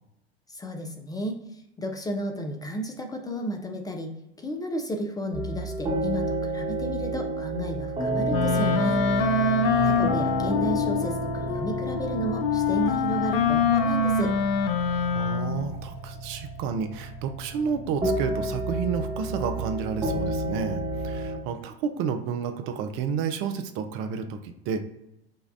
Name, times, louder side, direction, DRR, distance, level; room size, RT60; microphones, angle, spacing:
voice 1, 0.5-9.0 9.8-14.3, equal, 10° left, 3 dB, 0.4 m, -33 dB
sound 1, 5.3-21.4, right 2 dB, 20° right, 1.1 m, -31 dB
Wind instrument woodwind instrument, 8.3-15.7, left 5 dB, 60° left, 0.6 m, -25 dB
voice 2, 9.7-10.0 15.1-24.8, right 6 dB, 45° right, 8 dB, 0.5 m, -31 dB
5.3 x 2.2 x 2.6 m, 0.85 s
figure-of-eight pair, 80°, 31 cm